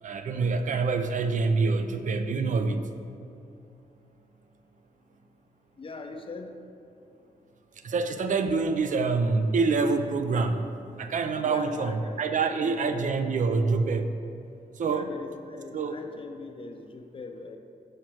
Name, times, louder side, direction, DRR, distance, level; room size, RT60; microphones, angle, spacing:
voice 1, 0.0-2.9 7.8-10.7 11.0-14.2 14.8-15.1 15.7-16.0, right 4 dB, 55° right, 8 dB, 0.4 m, -26 dB
voice 2, 5.8-6.5 11.4-13.1 14.8-17.6, left 3 dB, 35° left, 5 dB, 0.5 m, -40 dB
4.9 x 4.5 x 6.1 m, 2.5 s
wide cardioid pair, 115°, 16 cm